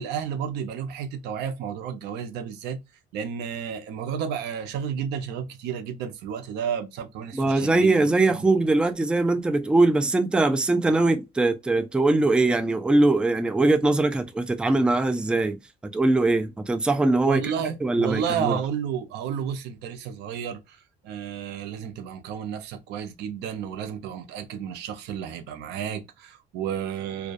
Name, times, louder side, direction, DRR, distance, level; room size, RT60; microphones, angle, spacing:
voice 1, 0.0-2.8 3.1-8.7 17.3-27.3, right 8 dB, 85° right, 0.5 m, -32 dB
voice 2, 7.3-15.6 15.9-17.5 17.8-18.6, right 2 dB, 5° right, 0.3 m, -21 dB
2.3 x 2.2 x 2.5 m
cardioid pair, 110°, 17 cm